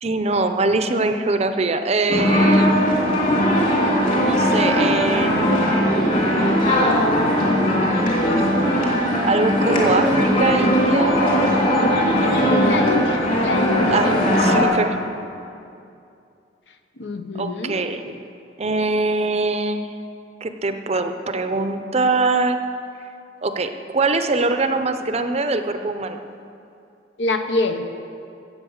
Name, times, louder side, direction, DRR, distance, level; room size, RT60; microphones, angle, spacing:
voice 1, 0.0-2.8 4.2-5.8 9.2-11.2 13.9-14.1 14.4-15.0 17.3-18.1 18.6-19.9 20.4-22.6 23.4-26.2, right 3 dB, 35° right, 8 dB, 0.6 m, -22 dB
sound 1, 2.1-14.6, equal, 45° left, 2.7 m, -19 dB
voice 2, 12.0-14.0 17.0-17.8 27.2-27.9, left 3 dB, 75° left, 7 dB, 0.9 m, -26 dB
16.5 x 7.5 x 6.4 m, 2.5 s
head